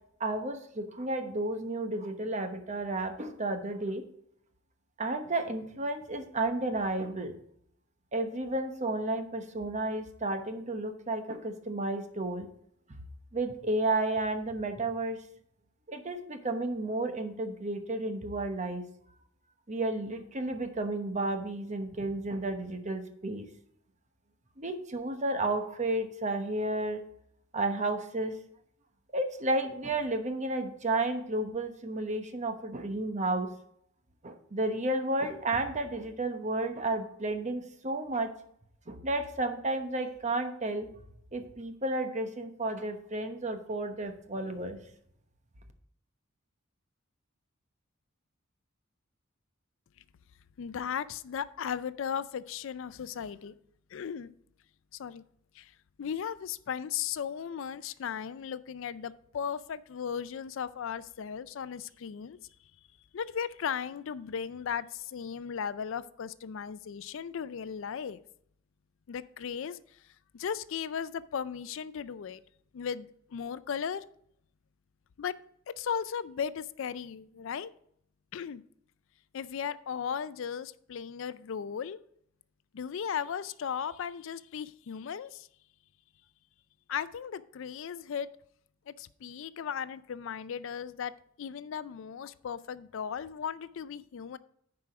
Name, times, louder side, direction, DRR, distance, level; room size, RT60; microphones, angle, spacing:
voice 1, 0.2-4.0 5.0-7.3 8.1-12.5 12.9-13.0 13.3-15.2 15.9-18.8 19.7-23.5 24.6-27.0 27.5-28.3 29.1-33.5 34.2-38.3 38.9-40.9 41.3-44.8, right 2 dB, 35° right, 7 dB, 1.0 m, -32 dB
voice 2, 50.6-53.5 53.9-54.3 54.9-55.2 55.5-55.7 56.0-62.4 63.1-68.2 69.1-69.8 70.3-72.4 72.7-74.0 75.2-75.4 75.7-77.7 78.3-78.6 79.3-82.0 82.7-85.5 86.9-88.3 88.9-91.1 91.4-94.4, left 7 dB, 65° left, 16 dB, 0.4 m, -36 dB
9.8 x 4.9 x 4.8 m, 0.70 s
head